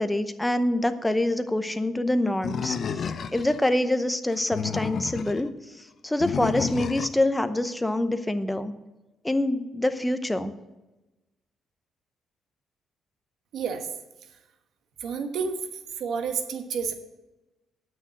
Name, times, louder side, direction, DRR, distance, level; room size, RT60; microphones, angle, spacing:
voice 1, 0.0-5.5 6.0-8.7 9.2-10.5, left 1 dB, 10° left, 10 dB, 0.8 m, -25 dB
Animal, 2.4-3.6 4.3-5.4 6.2-7.2, left 6 dB, 55° left, 0.6 m, -31 dB
voice 2, 13.5-13.9 15.0-15.6 16.0-16.9, right 6 dB, 75° right, 7 dB, 1.2 m, -29 dB
9.0 x 6.4 x 7.4 m, 1.0 s
cardioid pair, 90°, 0 cm